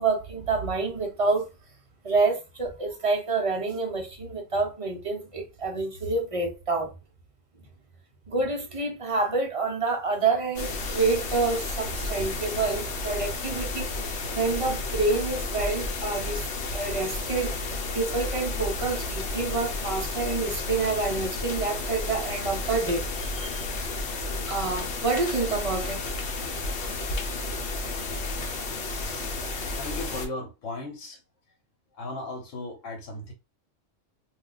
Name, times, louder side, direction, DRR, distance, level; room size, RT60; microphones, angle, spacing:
voice 1, 0.0-1.5 2.0-6.9 8.3-16.5 16.7-17.5 17.9-23.6 24.5-26.0, right 3 dB, 35° right, 0.5 m, -28 dB
sound 1, 10.6-30.3, left 3 dB, 65° left, 0.9 m, -32 dB
voice 2, 29.8-31.2 31.9-33.3, left 2 dB, 80° left, 1.1 m, -36 dB
2.3 x 2.3 x 3.8 m
omnidirectional pair, 1.3 m